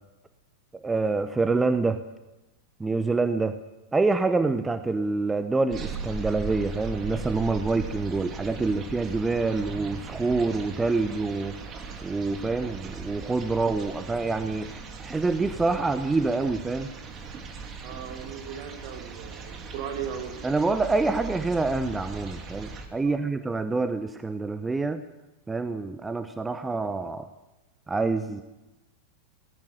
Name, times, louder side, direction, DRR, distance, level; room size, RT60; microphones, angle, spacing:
voice 1, 0.7-2.0 2.8-3.6 3.9-16.9 20.4-25.0 25.5-27.3 27.9-28.4, right 3 dB, 10° right, 11 dB, 0.9 m, -26 dB
sound 1, 5.7-22.9, right 4 dB, 25° right, 2.9 m, -39 dB
voice 2, 17.8-20.4 23.0-23.3, right 8 dB, 45° right, 6 dB, 3.2 m, -37 dB
18.5 x 15.5 x 10.0 m, 1.0 s
figure-of-eight pair, 90°, 0 cm